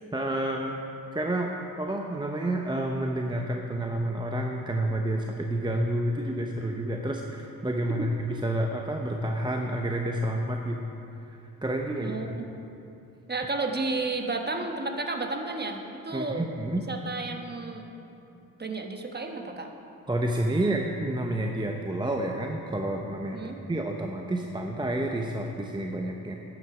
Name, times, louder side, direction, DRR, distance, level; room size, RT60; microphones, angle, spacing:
voice 1, 0.1-0.8 1.1-10.8 11.3-12.4 16.1-16.9 20.1-23.4 23.7-26.3, right 1 dB, 15° right, 2 dB, 0.8 m, -29 dB
voice 2, 12.0-12.5 13.3-17.9 18.6-19.7 23.3-23.6, right 3 dB, 30° right, 4 dB, 1.2 m, -32 dB
11.0 x 9.3 x 5.0 m, 2.8 s
cardioid pair, 65°, 36 cm